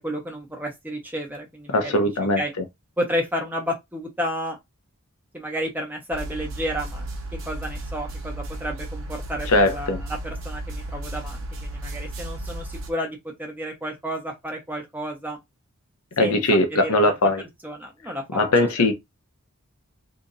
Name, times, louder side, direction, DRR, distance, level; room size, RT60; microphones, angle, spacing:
voice 1, 0.0-2.1 2.4-2.5 3.0-4.6 5.3-7.1 7.4-15.4 16.2-16.4 16.7-17.3 17.6-18.7, equal, 10° right, 1.0 m, -31 dB
voice 2, 1.7-2.6 9.5-10.0 16.2-17.4 18.3-18.9, left 1 dB, 85° left, 0.8 m, -20 dB
sound 1, 6.1-12.9, right 1 dB, 60° right, 1.0 m, -34 dB
2.9 x 2.6 x 3.9 m
head